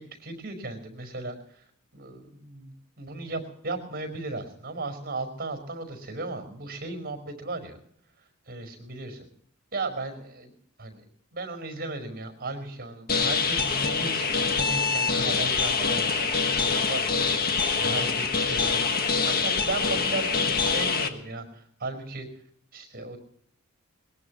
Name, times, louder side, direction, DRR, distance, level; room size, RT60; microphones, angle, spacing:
voice 1, 0.0-1.6 1.9-7.8 8.5-9.3 9.7-10.5 10.8-11.0 11.3-17.1 17.8-22.3 22.7-23.2, right 2 dB, 45° right, 6 dB, 5.0 m, -36 dB
sound 1, 13.1-21.1, left 5 dB, 45° left, 1.6 m, -25 dB
22.0 x 20.5 x 3.1 m, 0.65 s
head